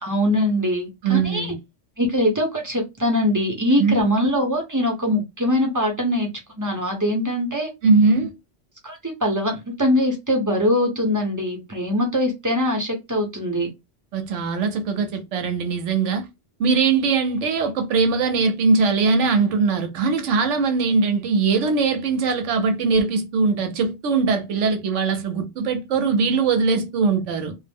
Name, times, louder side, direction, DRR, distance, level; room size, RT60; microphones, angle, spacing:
voice 1, 0.0-1.5 2.0-6.3 6.6-7.7 8.8-13.7, left 1 dB, 20° right, 0.6 m, -22 dB
voice 2, 1.0-1.6 3.8-4.0 7.8-8.3 14.1-16.2 16.6-27.6, right 4 dB, 80° right, 1.0 m, -21 dB
2.4 x 2.0 x 3.3 m
omnidirectional pair, 1.2 m